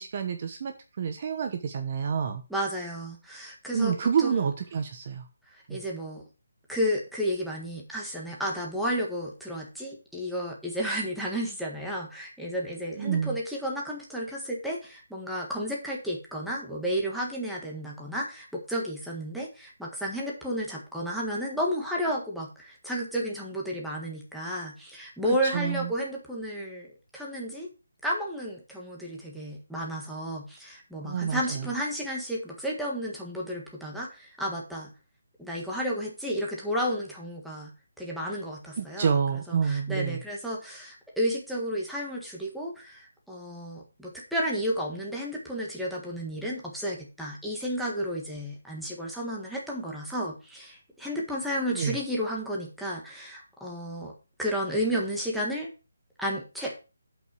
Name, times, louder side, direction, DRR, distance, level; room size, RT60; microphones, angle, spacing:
voice 1, 0.0-2.4 3.7-5.3 5.7-5.8 13.0-13.4 25.4-25.9 31.0-31.7 38.8-40.2 51.7-52.0, right 6 dB, 35° right, 7 dB, 0.9 m, -28 dB
voice 2, 2.5-4.3 5.5-6.2 6.7-27.7 28.0-34.9 35.4-37.7 38.0-39.1 39.5-54.1 54.4-55.7 56.2-56.7, equal, ahead, -4 dB, 1.5 m, -32 dB
8.0 x 5.6 x 6.1 m, 0.31 s
hypercardioid pair, 175°, 0 cm